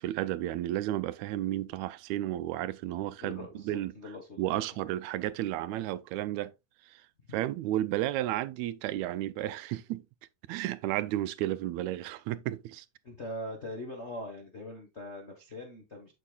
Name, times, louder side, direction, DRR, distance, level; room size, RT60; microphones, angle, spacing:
voice 1, 0.0-3.9 4.4-6.5 6.9-7.0 7.3-10.0 10.5-12.9, right 14 dB, 80° right, 1.8 m, -32 dB
voice 2, 3.2-4.7 7.3-7.4 13.0-16.1, left 1 dB, 45° left, 0.9 m, -42 dB
8.3 x 7.4 x 2.3 m
omnidirectional pair, 3.3 m